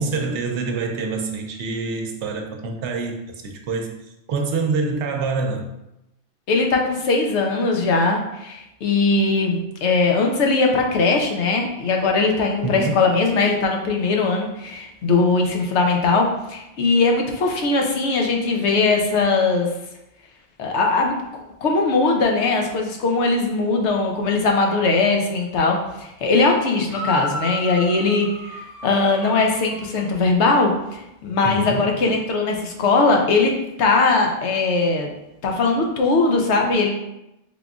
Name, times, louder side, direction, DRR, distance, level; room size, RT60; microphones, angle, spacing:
voice 1, 0.0-3.2 3.4-4.0 4.3-5.7 12.6-13.1 31.4-32.0, right 4 dB, 85° right, 3 dB, 0.9 m, -26 dB
voice 2, 6.5-19.7 20.6-21.2 21.6-33.5 33.8-35.1 35.4-36.9, left 3 dB, 80° left, 2 dB, 0.9 m, -20 dB
sound 1, 26.9-30.1, left 1 dB, 35° left, 0.7 m, -34 dB
3.6 x 3.6 x 2.3 m, 0.90 s
omnidirectional pair, 1.1 m